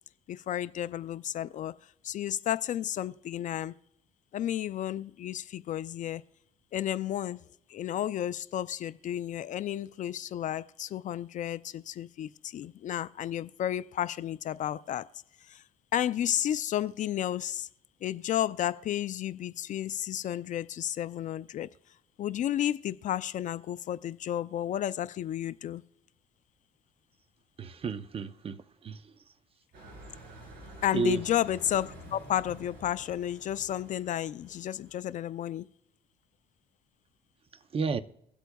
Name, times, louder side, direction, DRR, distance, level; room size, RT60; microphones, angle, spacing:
voice 1, 0.3-1.7 2.0-3.7 4.3-6.2 6.7-7.4 7.7-15.1 15.5-15.6 15.9-17.7 18.0-21.7 22.2-25.8 30.8-35.7, left 11 dB, 50° left, 0.4 m, -32 dB
voice 2, 27.6-29.1 30.9-31.2 37.7-38.0, right 4 dB, 35° right, 0.6 m, -32 dB
sound 1, 29.7-35.4, right 1 dB, 65° right, 4.2 m, -49 dB
23.5 x 8.0 x 2.3 m
cardioid pair, 110°, 17 cm